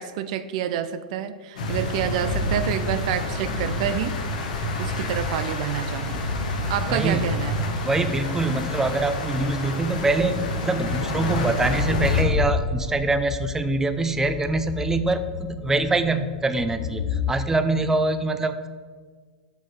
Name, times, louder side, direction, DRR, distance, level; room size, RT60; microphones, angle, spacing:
voice 1, 0.0-4.1 4.8-6.3 6.7-7.6, right 10 dB, 60° right, 12 dB, 0.4 m, -28 dB
sound 1, 1.6-12.2, left 1 dB, 75° left, 1.2 m, -28 dB
voice 2, 6.9-7.4 7.8-18.7, right 2 dB, 10° right, 9 dB, 0.5 m, -24 dB
sound 2, 11.9-17.3, left 7 dB, 60° left, 0.6 m, -29 dB
6.0 x 5.2 x 5.7 m, 1.6 s
hypercardioid pair, 100°, 4 cm